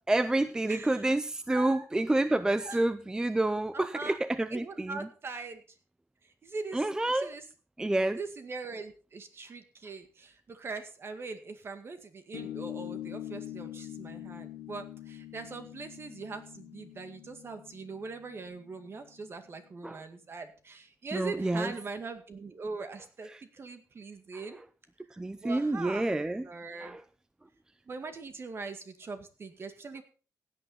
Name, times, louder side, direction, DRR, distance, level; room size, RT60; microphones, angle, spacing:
voice 1, 0.0-5.0 6.7-7.3 7.8-8.2 19.8-20.0 21.1-21.7 25.2-26.4 26.8-27.0, right 2 dB, 10° right, 13 dB, 0.5 m, -28 dB
voice 2, 0.7-1.2 1.5-1.9 2.6-2.8 3.7-4.2 4.5-5.8 6.2-7.5 8.2-24.6 25.1-26.2 26.4-27.0 27.9-30.0, right 4 dB, 40° right, 7 dB, 2.0 m, -42 dB
sound 1, 12.3-19.3, left 12 dB, 90° left, 1.3 m, -44 dB
16.5 x 9.0 x 4.1 m, 0.37 s
cardioid pair, 115°, 6 cm